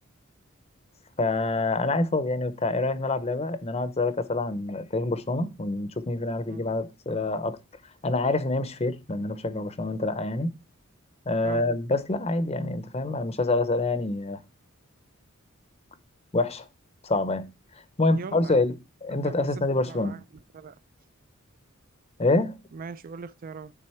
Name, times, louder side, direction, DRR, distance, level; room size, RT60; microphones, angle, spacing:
voice 1, 1.2-7.6 8.0-10.5 11.3-14.4 16.3-16.7 17.0-17.5 18.0-20.2 22.2-22.6, left 2 dB, 30° left, 0.7 m, -26 dB
voice 2, 18.1-18.6 19.1-20.2 20.5-20.8 22.7-23.7, right 5 dB, 40° right, 0.4 m, -41 dB
9.7 x 3.8 x 4.3 m
head